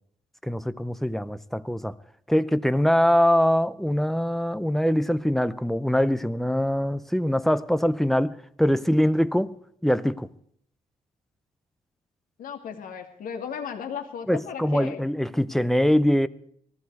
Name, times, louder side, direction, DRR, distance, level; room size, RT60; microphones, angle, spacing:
voice 1, 0.4-2.0 2.3-9.6 9.8-10.3 14.3-16.3, equal, ahead, 0.6 m, -23 dB
voice 2, 12.4-15.0, left 7 dB, 85° left, 2.3 m, -35 dB
19.0 x 14.5 x 4.7 m
cardioid pair, 130°, 14 cm